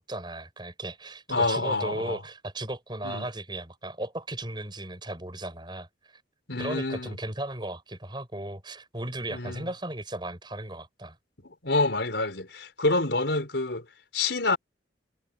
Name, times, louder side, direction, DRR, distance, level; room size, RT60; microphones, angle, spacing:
voice 1, 0.0-5.9 6.6-11.2, right 1 dB, 25° right, 7.1 m, -36 dB
voice 2, 1.3-2.2 3.0-3.3 6.5-7.2 9.3-9.7 11.4-13.8 14.1-14.6, left 2 dB, 85° left, 4.2 m, -27 dB
head